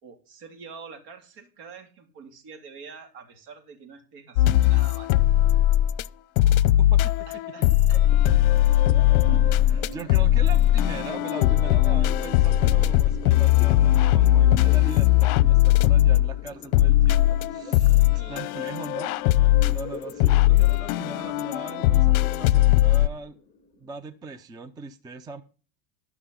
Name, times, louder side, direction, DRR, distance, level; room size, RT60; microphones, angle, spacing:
voice 1, 0.0-5.2 7.3-8.3 9.1-9.2 18.1-18.5, right 5 dB, 55° right, 3.4 m, -46 dB
sound 1, 4.4-6.1 6.4-23.1, left 14 dB, 65° left, 0.7 m, -19 dB
voice 2, 6.4-7.1 9.1-17.2 17.5-19.2 19.7-23.4 23.8-25.4, right 4 dB, 10° right, 0.4 m, -40 dB
sound 2, 7.9-23.9, left 2 dB, 15° left, 1.5 m, -42 dB
12.5 x 6.0 x 5.5 m
supercardioid pair, 130°, 48 cm